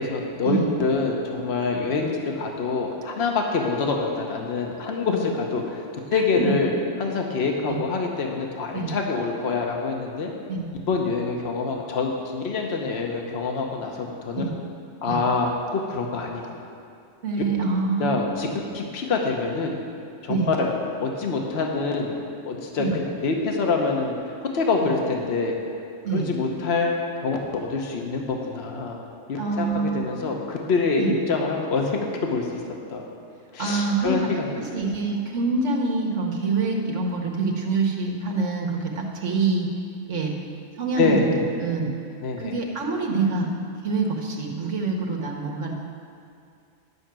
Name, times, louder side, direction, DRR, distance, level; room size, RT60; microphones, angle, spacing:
voice 1, 0.0-5.8 6.1-6.7 7.0-10.3 10.9-14.4 15.0-16.6 17.4-17.5 18.0-18.5 18.7-19.8 20.2-20.7 21.0-24.1 24.4-25.6 26.1-26.9 27.2-29.0 29.3-32.5 32.9-33.0 33.5-34.9 40.9-41.3 42.2-42.5, left 4 dB, 60° left, 1 dB, 1.2 m, -26 dB
voice 2, 6.1-6.6 7.7-7.8 8.7-8.9 10.5-10.7 14.3-14.5 15.0-15.2 17.2-18.4 20.3-20.5 22.8-22.9 26.0-26.3 29.4-30.1 31.0-31.1 33.6-34.3 34.6-39.7 40.0-40.3 40.8-41.9 42.4-43.5 43.8-45.7, right 4 dB, 90° right, 0 dB, 1.6 m, -26 dB
11.0 x 5.8 x 7.5 m, 2.4 s
omnidirectional pair, 1.2 m